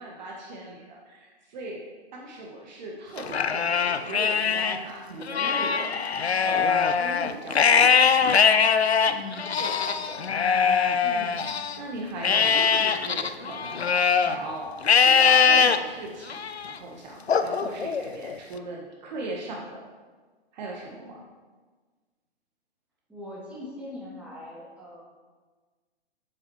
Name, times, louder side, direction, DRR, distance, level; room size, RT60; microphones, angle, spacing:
voice 1, 0.0-1.9 2.1-5.9 6.4-8.0 8.3-8.5 9.6-9.7 11.0-14.7 15.0-19.9 20.5-21.2, right 2 dB, 45° right, -1 dB, 1.1 m, -38 dB
Livestock farm animals working animals, 3.2-4.8 5.2-11.8 12.2-14.4 14.8-15.8 16.3-16.7 17.3-18.4, left 6 dB, 90° left, 0.5 m, -22 dB
voice 2, 9.1-10.3 23.1-25.0, left 2 dB, 5° right, -7 dB, 2.1 m, -41 dB
7.5 x 7.1 x 3.0 m, 1.4 s
figure-of-eight pair, 115°, 31 cm